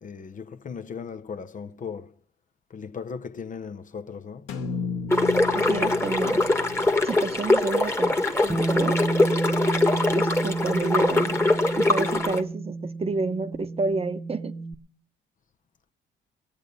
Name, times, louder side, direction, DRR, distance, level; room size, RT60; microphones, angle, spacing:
voice 1, 0.0-2.1 2.7-4.5, left 6 dB, 40° left, 0.7 m, -37 dB
sound 1, 4.5-8.7, left 5 dB, 90° left, 1.6 m, -35 dB
sound 2, 5.1-12.4, left 2 dB, 10° left, 1.4 m, -23 dB
voice 2, 5.5-6.5 7.0-9.0 10.2-14.6, right 3 dB, 30° right, 0.9 m, -30 dB
Bass guitar, 8.5-14.7, right 3 dB, 5° right, 1.1 m, -30 dB
20.5 x 8.3 x 5.3 m
cardioid pair, 90°, 20 cm